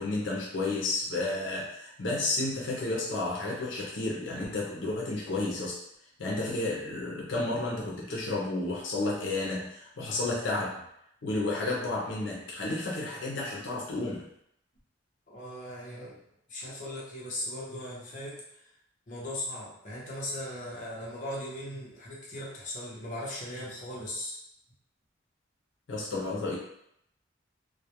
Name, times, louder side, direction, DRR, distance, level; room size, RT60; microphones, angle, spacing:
voice 1, 0.0-5.8 6.2-10.8 11.2-14.3 25.9-26.6, left 2 dB, 80° left, -4 dB, 0.6 m, -31 dB
voice 2, 15.3-16.2 16.5-18.4 19.1-24.4, left 1 dB, 45° left, -6 dB, 0.7 m, -38 dB
2.3 x 2.1 x 2.8 m, 0.76 s
head